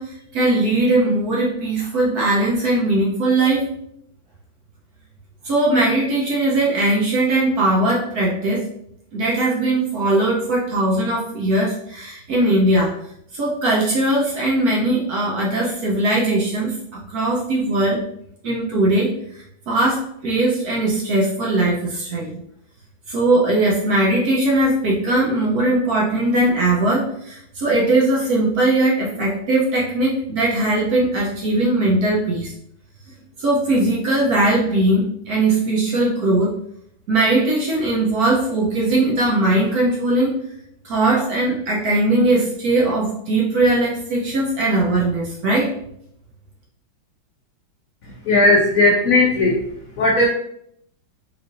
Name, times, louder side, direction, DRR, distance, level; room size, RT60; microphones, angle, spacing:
voice 1, 0.0-3.7 5.4-8.7 9.1-12.9 13.3-18.0 18.4-22.4 23.1-32.5 33.4-36.6 37.1-40.3 40.8-45.7, right 2 dB, 65° right, -4 dB, 1.0 m, -19 dB
voice 2, 48.2-49.6 50.0-50.3, left 2 dB, 85° left, -2 dB, 0.7 m, -16 dB
4.6 x 2.5 x 2.5 m, 0.72 s
omnidirectional pair, 2.2 m